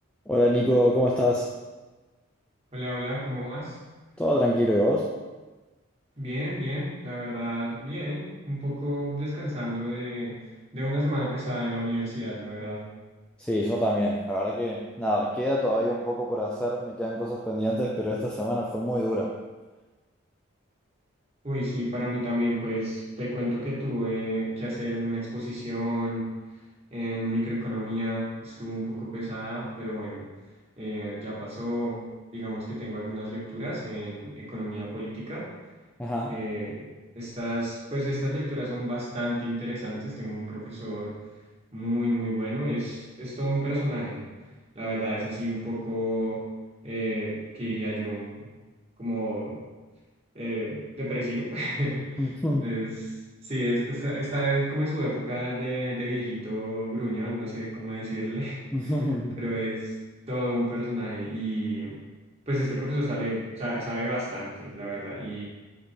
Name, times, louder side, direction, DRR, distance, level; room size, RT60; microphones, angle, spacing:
voice 1, 0.3-1.5 4.2-5.1 13.4-19.4 36.0-36.4 52.2-52.7 58.7-59.4, equal, 5° left, -3 dB, 0.4 m, -25 dB
voice 2, 2.7-3.8 6.2-10.4 10.7-12.8 21.4-26.3 26.9-30.2 30.8-32.0 32.3-35.5 36.3-36.9 37.2-41.1 41.7-44.2 44.7-46.4 46.8-48.4 49.0-49.6 50.3-52.3 52.6-53.1 53.4-58.9 59.4-59.9 60.3-62.0 62.5-65.4, equal, 30° right, -7 dB, 1.9 m, -31 dB
5.2 x 4.3 x 4.4 m, 1.2 s
head